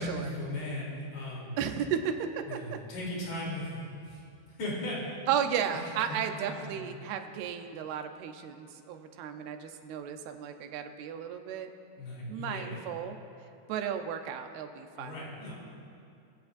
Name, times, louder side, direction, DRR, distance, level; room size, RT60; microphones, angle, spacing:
voice 1, 0.0-1.5 2.5-4.2 4.6-5.0 5.7-6.9 12.0-12.8 15.0-15.5, left 1 dB, 75° left, -5 dB, 5.2 m, -37 dB
voice 2, 1.6-2.8 5.3-11.7 12.3-13.2 13.7-15.2, right 8 dB, 80° right, 6 dB, 2.7 m, -34 dB
20.5 x 16.0 x 2.6 m, 2.5 s
omnidirectional pair, 4.5 m